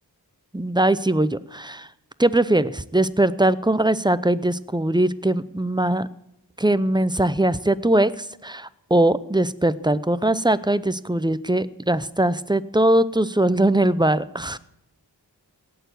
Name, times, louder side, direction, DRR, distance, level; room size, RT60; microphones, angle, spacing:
voice 1, 0.5-1.9 2.2-6.1 6.6-14.6, right 1 dB, 10° right, 16 dB, 0.7 m, -21 dB
17.0 x 6.9 x 8.0 m, 0.84 s
wide cardioid pair, 55°, 41 cm